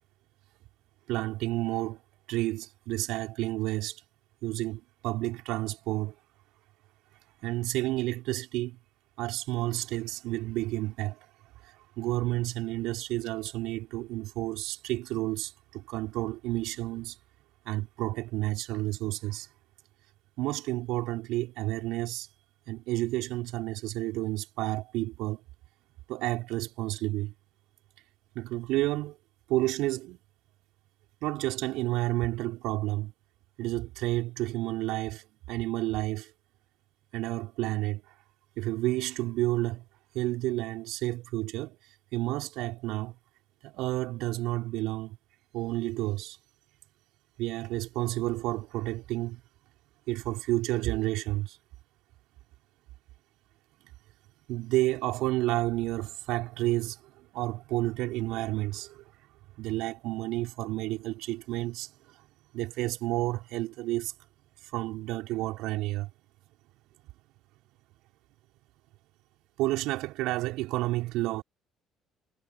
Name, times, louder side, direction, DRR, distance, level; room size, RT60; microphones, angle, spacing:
voice 1, 1.1-2.0 2.3-4.0 4.4-6.1 7.4-8.8 9.2-11.2 11.6-17.2 17.7-19.5 20.4-22.3 22.7-25.4 26.1-27.3 28.3-29.2 29.5-30.2 31.2-33.1 33.6-36.3 37.1-38.0 38.6-39.8 40.1-41.8 42.1-43.2 43.6-45.2 45.5-46.4 47.4-49.4 50.1-51.6 54.5-59.0 59.6-61.9 62.5-64.1 64.7-66.1 69.6-71.4, right 18 dB, 65° right, 5.6 m, -31 dB
figure-of-eight pair, 50°, 0 cm